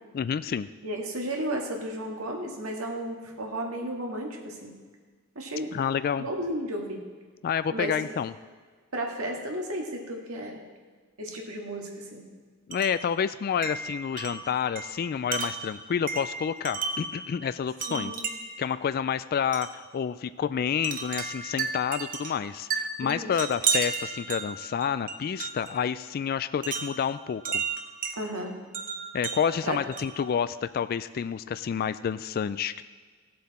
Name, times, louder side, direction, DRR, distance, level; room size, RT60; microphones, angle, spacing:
voice 1, 0.1-0.7 5.7-6.3 7.4-8.3 12.7-18.1 18.6-27.6 29.1-32.9, left 7 dB, 45° left, 14 dB, 0.3 m, -29 dB
voice 2, 0.8-4.7 5.4-5.7 6.2-7.0 7.7-7.9 8.9-10.6 11.2-12.2 17.9-18.3 23.0-23.3 28.2-28.5 29.6-29.8, right 1 dB, 75° right, 0 dB, 2.0 m, -33 dB
Wind chime, 12.7-13.1 13.6-17.2 17.8-18.6 19.5-19.8 20.8-25.8 26.6-28.2 28.7-30.3, right 5 dB, 40° right, 0.9 m, -33 dB
16.5 x 7.6 x 4.2 m, 1.5 s
head